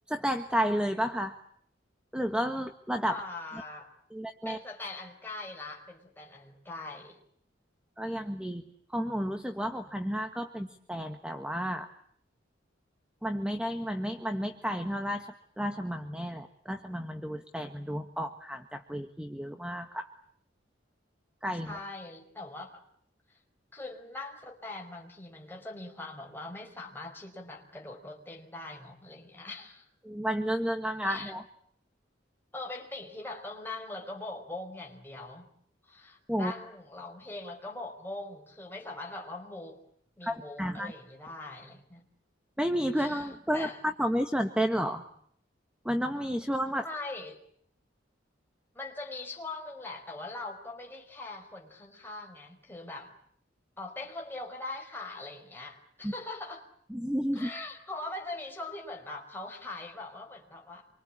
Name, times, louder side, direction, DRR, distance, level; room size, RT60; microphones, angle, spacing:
voice 1, 0.1-1.3 2.1-3.2 4.1-4.6 8.0-8.6 8.9-11.9 13.2-15.3 15.6-20.1 21.4-21.8 30.0-31.4 36.3-36.5 40.2-40.9 42.6-45.0 45.8-46.9 56.0-56.1 56.9-57.5, equal, 5° right, 7 dB, 1.4 m, -31 dB
voice 2, 3.1-3.9 4.5-7.2 21.5-22.8 23.3-23.4 23.7-29.8 31.0-31.3 32.5-35.5 35.9-39.8 40.2-42.0 43.0-43.8 46.8-47.4 48.8-53.1 53.8-56.6 57.3-60.9, left 2 dB, 10° left, 1 dB, 5.0 m, -42 dB
27.0 x 24.5 x 8.6 m, 0.65 s
head